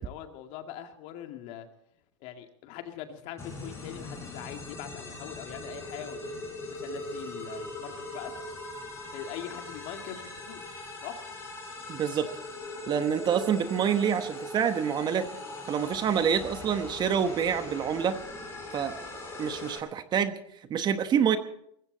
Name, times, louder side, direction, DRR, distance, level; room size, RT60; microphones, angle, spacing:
voice 1, 0.0-1.7 2.2-6.5 6.8-8.3 9.1-10.6 11.0-11.2, left 10 dB, 50° left, 5 dB, 2.2 m, -42 dB
sound 1, 3.4-19.8, left 2 dB, 15° left, 5.6 m, -40 dB
voice 2, 11.9-12.3 12.9-15.3 15.7-18.2 18.7-19.0 19.4-20.3 20.7-21.4, right 8 dB, 25° right, 10 dB, 1.1 m, -27 dB
21.0 x 15.5 x 4.0 m, 0.72 s
hypercardioid pair, 125°, 16 cm